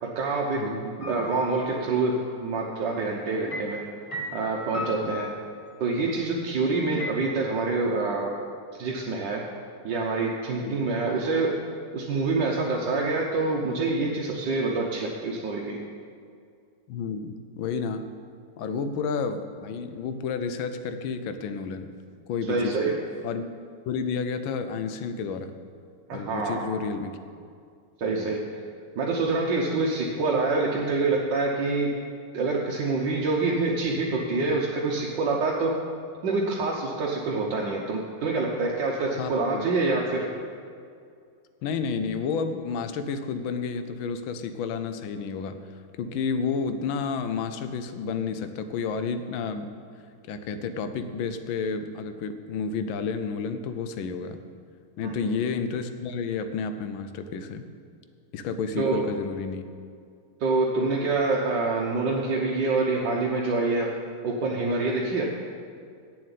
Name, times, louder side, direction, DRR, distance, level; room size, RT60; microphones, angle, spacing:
voice 1, 0.0-3.8 4.3-5.3 5.8-8.3 8.8-9.4 9.8-11.5 11.9-15.8 22.5-22.9 26.1-26.7 28.0-28.4 29.0-31.9 32.3-35.7 36.2-40.3 55.0-55.2 58.8-59.1 60.4-63.9 64.2-65.3, right 3 dB, 65° right, -2 dB, 1.5 m, -26 dB
voice 2, 0.5-0.9 5.0-5.2 10.6-10.7 16.9-18.1 18.6-21.9 22.3-22.9 23.2-23.4 23.9-25.6 26.1-27.2 28.1-28.3 34.4-34.6 39.2-39.6 41.6-49.7 50.3-54.4 55.0-57.7 58.3-59.6, left 5 dB, 70° left, 9 dB, 1.4 m, -31 dB
sound 1, 1.0-1.8 3.5-5.9 7.0-7.1, left 1 dB, 20° left, 1.2 m, -36 dB
7.9 x 7.4 x 8.3 m, 2.3 s
omnidirectional pair, 2.4 m